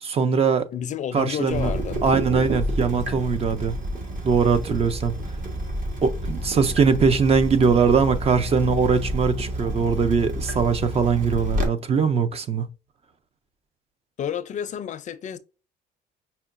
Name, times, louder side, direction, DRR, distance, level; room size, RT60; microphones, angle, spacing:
voice 1, 0.0-0.7 1.1-1.7 2.0-3.8 4.2-5.1 6.0-12.7, right 5 dB, 35° right, 0.5 m, -21 dB
voice 2, 0.7-2.0 14.2-15.4, left 9 dB, 45° left, 0.5 m, -30 dB
Water tap faucet / Drip, 1.5-11.7, equal, 50° right, 1.4 m, -29 dB
5.5 x 2.2 x 2.5 m
cardioid pair, 110°, 17 cm